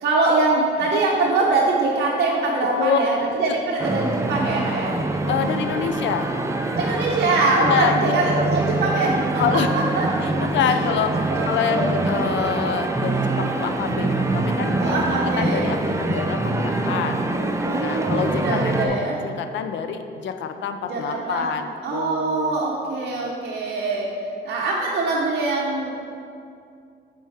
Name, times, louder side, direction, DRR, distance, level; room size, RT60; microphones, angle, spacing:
voice 1, 0.0-5.0 6.7-9.2 9.7-10.1 11.3-11.4 11.7-11.9 14.8-15.7 17.6-19.2 20.8-21.5 21.8-24.1 24.4-25.9, right 3 dB, 55° right, -4 dB, 0.8 m, -23 dB
sound 1, 3.8-18.9, right 2 dB, 15° right, 0.4 m, -24 dB
voice 2, 5.1-6.3 7.5-8.2 9.4-9.7 10.2-17.3 17.8-19.0 19.2-22.7, left 7 dB, 70° left, 7 dB, 0.5 m, -26 dB
7.2 x 4.6 x 3.5 m, 2.4 s
cardioid pair, 90°, 20 cm